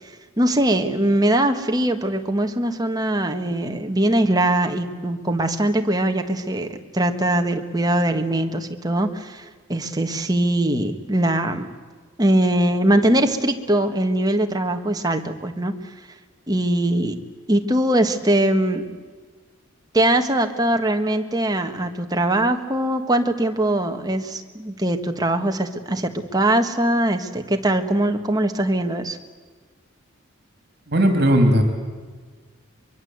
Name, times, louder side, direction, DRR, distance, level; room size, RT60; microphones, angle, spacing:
voice 1, 0.4-11.7 12.2-15.7 16.5-17.2 17.5-18.8 19.9-29.2, right 1 dB, 20° right, 5 dB, 1.6 m, -21 dB
voice 2, 30.9-31.6, equal, 50° right, 5 dB, 3.1 m, -16 dB
24.0 x 23.0 x 8.0 m, 1.4 s
head